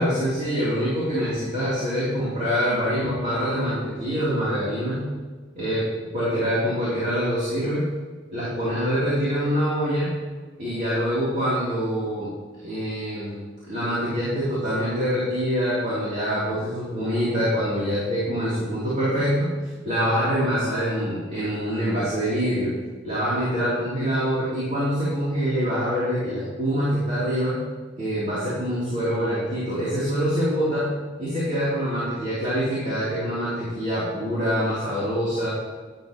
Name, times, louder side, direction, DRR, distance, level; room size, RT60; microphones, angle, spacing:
voice 1, 0.0-5.0 5.5-5.8 6.1-7.8 8.3-10.1 10.6-12.3 12.6-13.4 13.7-19.5 19.8-22.7 23.0-27.6 28.0-30.9 31.2-35.5, equal, 40° right, -10 dB, 3.1 m, -25 dB
12.0 x 11.0 x 3.0 m, 1.4 s
head